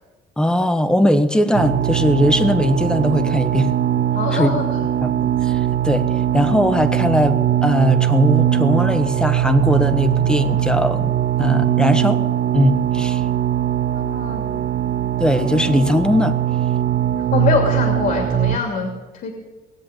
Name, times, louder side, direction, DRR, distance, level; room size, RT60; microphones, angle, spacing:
voice 1, 0.4-3.7 4.3-4.5 5.0-6.1 6.3-11.1 11.4-12.2 12.5-13.2 15.2-16.4, equal, 5° left, 9 dB, 1.3 m, -19 dB
sound 1, 1.5-18.6, right 11 dB, 55° right, 0.7 m, -20 dB
voice 2, 4.1-4.7 13.9-14.7 17.3-19.3, left 5 dB, 60° left, 2 dB, 2.7 m, -24 dB
20.0 x 7.5 x 9.1 m, 1.2 s
cardioid pair, 110°, 17 cm